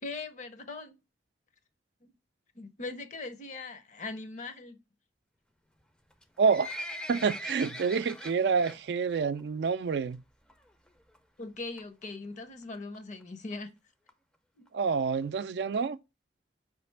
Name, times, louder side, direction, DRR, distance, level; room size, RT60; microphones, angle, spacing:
voice 1, 0.0-0.9 2.0-2.1 2.5-4.8 11.4-13.7 14.6-14.7, left 3 dB, 45° left, 0.7 m, -40 dB
Livestock farm animals working animals, 6.1-8.8 9.1-9.4 9.7-9.8 10.5-10.6 10.9-11.0 11.1-11.2 11.8-12.0 12.6-12.7 12.9-13.0 13.2-13.3 13.5-13.6 14.1-14.2 14.7-14.8 15.2-15.3, equal, 5° left, 0.5 m, -41 dB
voice 2, 6.4-6.7 7.1-10.2 14.7-16.0, right 5 dB, 70° right, 0.4 m, -28 dB
5.0 x 3.2 x 3.2 m
head